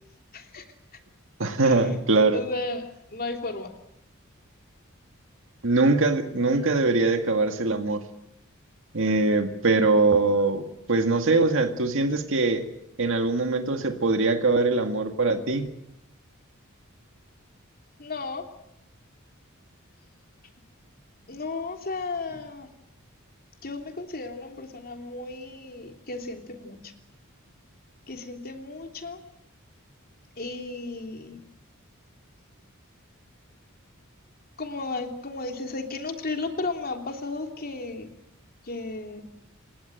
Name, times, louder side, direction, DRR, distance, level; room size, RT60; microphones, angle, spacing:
voice 1, 0.3-0.6 1.6-1.8 2.3-2.8 3.1-3.7 18.0-18.5 21.3-22.7 23.6-26.9 28.1-29.2 30.4-31.4 34.6-38.1 38.6-39.2, left 3 dB, 45° left, 4 dB, 3.2 m, -34 dB
voice 2, 1.4-2.4 5.6-8.0 8.9-12.7 13.0-15.7, right 3 dB, 65° right, 6 dB, 2.0 m, -22 dB
29.5 x 18.5 x 7.9 m, 0.82 s
head